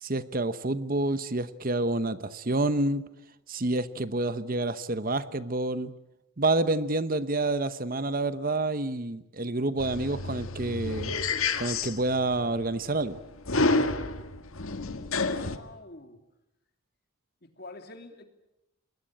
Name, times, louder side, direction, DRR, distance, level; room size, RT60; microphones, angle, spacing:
voice 1, 0.0-3.0 3.5-5.9 6.4-11.2 11.6-13.2, right 2 dB, 40° right, 13 dB, 1.0 m, -28 dB
sound 1, 9.8-15.6, left 3 dB, 75° left, 1.8 m, -30 dB
voice 2, 15.1-16.3 17.4-18.2, left 2 dB, 45° left, 6 dB, 2.9 m, -46 dB
28.5 x 21.5 x 8.8 m, 0.90 s
head